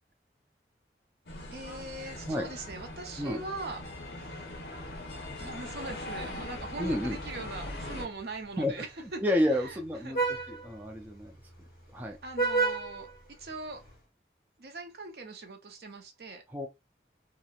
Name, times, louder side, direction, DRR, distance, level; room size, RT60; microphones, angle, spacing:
sound 1, 1.3-8.1, left 1 dB, 75° left, 0.8 m, -41 dB
voice 1, 1.5-3.8 4.2-4.5 5.4-10.5 12.2-13.8 14.6-16.4, right 3 dB, 65° right, 0.6 m, -41 dB
Vehicle horn car horn honking, 6.0-14.0, right 4 dB, 50° left, 1.1 m, -36 dB
voice 2, 6.8-7.2 8.6-8.7 9.2-10.2 10.6-11.3 11.9-12.2 16.5-16.7, left 1 dB, 10° right, 0.4 m, -29 dB
2.8 x 2.1 x 2.3 m
head